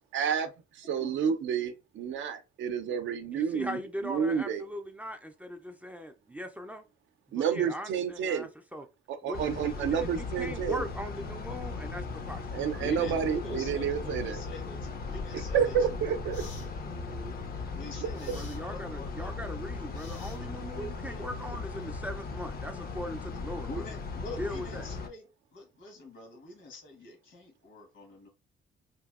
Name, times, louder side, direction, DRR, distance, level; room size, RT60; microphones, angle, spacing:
voice 1, 0.1-0.5 0.7-4.7 7.3-8.5 9.1-10.9 12.5-14.4 15.3-16.4 18.0-18.4, right 7 dB, 70° right, 0.5 m, -30 dB
voice 2, 3.3-6.8 7.3-8.8 9.2-12.8 18.0-23.9 24.4-24.9, equal, 10° right, 0.4 m, -40 dB
sound 1, 9.3-25.1, left 4 dB, 50° left, 0.5 m, -38 dB
voice 3, 12.8-15.8 16.1-17.5 17.7-19.9 20.8-21.2 23.7-25.2 25.5-28.3, left 1 dB, 70° left, 1.2 m, -44 dB
sound 2, 16.3-16.7 18.1-18.6 19.9-20.7, left 4 dB, 90° left, 0.9 m, -51 dB
2.9 x 2.6 x 2.3 m
cardioid pair, 90°, 20 cm